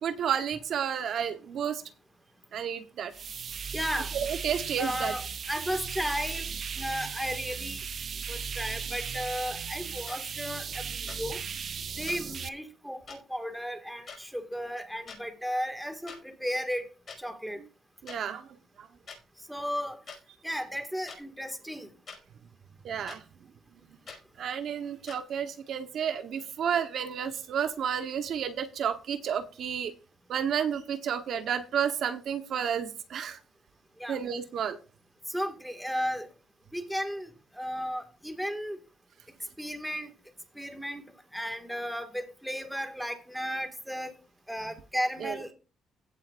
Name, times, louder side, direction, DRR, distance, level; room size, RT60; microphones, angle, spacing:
voice 1, 0.0-1.8 2.5-3.1 4.1-5.1 18.0-18.5 18.8-18.9 22.8-23.2 24.4-29.9 30.3-33.4 34.1-34.8 45.2-45.4, right 8 dB, 70° right, 8 dB, 1.1 m, -31 dB
sound 1, 3.1-12.5, right 6 dB, 50° right, 0.6 m, -37 dB
voice 2, 3.7-4.1 4.8-7.8 8.3-11.4 12.0-16.9 17.2-17.6 19.5-20.0 20.4-21.9 34.0-34.2 35.3-36.3 36.7-38.8 39.6-40.1 40.6-41.0 41.3-44.1 44.5-45.5, equal, ahead, 6 dB, 2.1 m, -34 dB
sound 2, 10.1-10.2 11.1-11.2 12.1-12.2 13.1-13.2 14.1-14.2 14.9-15.2 16.1-16.2 17.1-17.2 18.1-18.2 19.1-19.2 20.1-20.2 21.1-21.2 22.1-22.2 23.1-23.2 24.1-24.2 25.1-25.2, left 5 dB, 45° left, 5.5 m, -44 dB
16.0 x 7.9 x 2.6 m, 0.34 s
cardioid pair, 90°, 0 cm